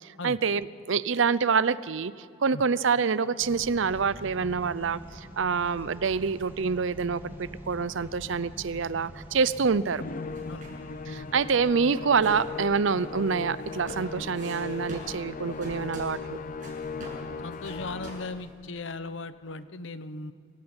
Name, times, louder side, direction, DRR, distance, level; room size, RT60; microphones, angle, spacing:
voice 1, 0.0-2.1 2.4-10.0 11.1-16.4, right 5 dB, 65° right, 17 dB, 0.6 m, -26 dB
sound 1, 3.4-16.1, equal, 10° right, 2.6 m, -47 dB
Musical instrument, 10.0-18.5, left 4 dB, 40° left, 0.6 m, -38 dB
sound 2, 10.3-18.5, right 1 dB, 40° right, 6.9 m, -46 dB
voice 2, 17.4-20.3, left 3 dB, 65° left, 13 dB, 1.0 m, -37 dB
26.5 x 15.0 x 8.9 m, 2.3 s
head